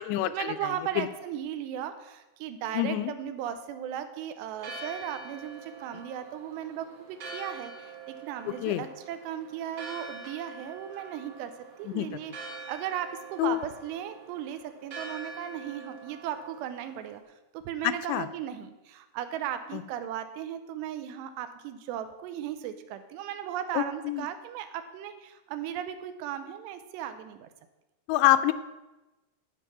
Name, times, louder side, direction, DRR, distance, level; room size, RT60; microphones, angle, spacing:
voice 1, 0.3-12.3 12.7-17.2 17.5-27.5, right 10 dB, 80° right, 10 dB, 2.8 m, -36 dB
voice 2, 2.7-3.1 8.6-8.8 11.9-12.1 13.4-13.6 17.8-18.3 19.7-19.8 23.8-24.3 28.1-28.5, left 15 dB, 85° left, 11 dB, 2.7 m, -26 dB
Church bell, 4.5-17.2, right 3 dB, 55° right, 1.8 m, -45 dB
15.0 x 5.6 x 6.0 m, 1.0 s
omnidirectional pair, 5.0 m